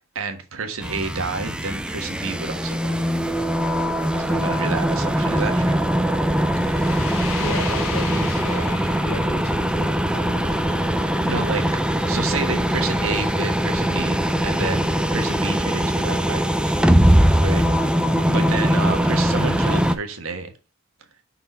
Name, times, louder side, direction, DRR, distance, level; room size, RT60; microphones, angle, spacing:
voice 1, 0.1-3.1 4.1-5.8 11.2-11.6 12.1-16.7 17.1-18.0 18.3-20.5, right 4 dB, 80° right, 1.3 m, -30 dB
sound 1, 0.8-19.9, equal, 5° right, 0.4 m, -21 dB
sound 2, 2.6-16.1, left 5 dB, 80° left, 1.0 m, -39 dB
voice 2, 6.9-10.6 14.6-14.8 18.1-18.4, left 1 dB, 50° left, 3.2 m, -34 dB
5.7 x 4.5 x 5.4 m
head